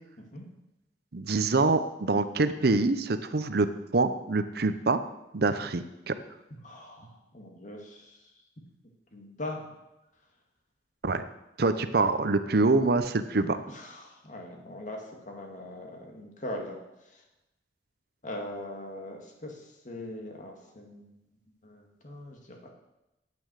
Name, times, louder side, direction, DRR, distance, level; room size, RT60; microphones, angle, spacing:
voice 1, 1.1-3.7 3.9-5.0 5.3-6.1 11.0-11.2 11.6-13.6, right 3 dB, 60° right, 11 dB, 0.7 m, -25 dB
voice 2, 6.6-8.2 9.1-9.6 13.7-16.8 17.1-17.2 18.2-19.6 19.8-21.2 21.6-22.7, left 1 dB, 45° left, 1 dB, 2.2 m, -41 dB
9.6 x 8.7 x 6.4 m, 0.95 s
head